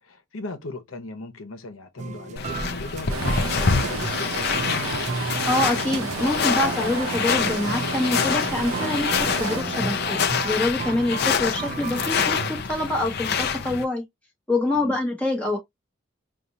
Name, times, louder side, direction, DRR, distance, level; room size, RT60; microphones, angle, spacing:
voice 1, 0.0-5.1 14.7-15.0, left 3 dB, 80° left, 1.1 m, -38 dB
sound 1, 2.0-12.6, right 4 dB, 35° right, 0.3 m, -34 dB
sound 2, 2.4-13.8, left 6 dB, 50° left, 0.6 m, -26 dB
Stream, 3.1-9.6, right 4 dB, 85° right, 0.7 m, -32 dB
voice 2, 5.5-10.2 10.4-14.0 14.5-15.6, left 2 dB, 5° left, 1.7 m, -25 dB
5.2 x 2.7 x 2.8 m
head